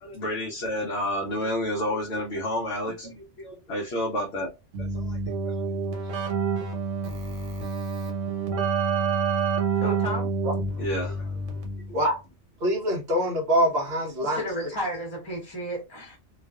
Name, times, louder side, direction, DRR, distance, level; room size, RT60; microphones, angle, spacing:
voice 1, 0.0-4.5 4.8-5.2 5.5-5.8 10.8-11.3, left 1 dB, 65° left, 0.8 m, -30 dB
Keyboard (musical), 4.7-12.0, right 4 dB, 90° right, 1.1 m, -28 dB
voice 2, 9.7-10.3 14.2-16.2, equal, 25° left, 0.8 m, -32 dB
voice 3, 12.6-14.4, equal, 60° right, 0.8 m, -24 dB
2.4 x 2.3 x 2.2 m
omnidirectional pair, 1.3 m